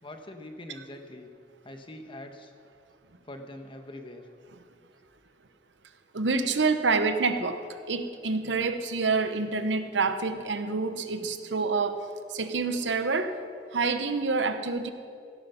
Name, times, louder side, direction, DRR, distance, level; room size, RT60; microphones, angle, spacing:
voice 1, 0.0-1.3 1.6-2.5 3.2-4.3, left 1 dB, 30° left, 5 dB, 1.3 m, -43 dB
voice 2, 6.1-12.0 12.3-13.3 13.7-14.9, right 4 dB, 75° right, 9 dB, 1.0 m, -27 dB
16.5 x 12.5 x 5.7 m, 2.3 s
head